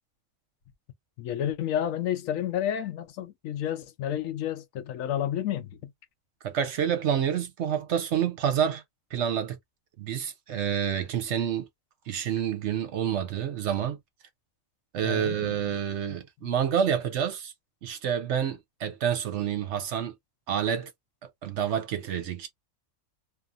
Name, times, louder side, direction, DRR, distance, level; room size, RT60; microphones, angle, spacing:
voice 1, 1.2-5.9 15.0-15.6 16.4-16.5, left 10 dB, 75° left, 0.9 m, -31 dB
voice 2, 6.4-8.8 9.1-9.6 10.0-11.7 12.1-14.0 14.9-17.5 17.8-20.1 20.5-20.9 21.4-22.5, right 9 dB, 65° right, 0.9 m, -28 dB
2.6 x 2.6 x 2.4 m
omnidirectional pair, 1.4 m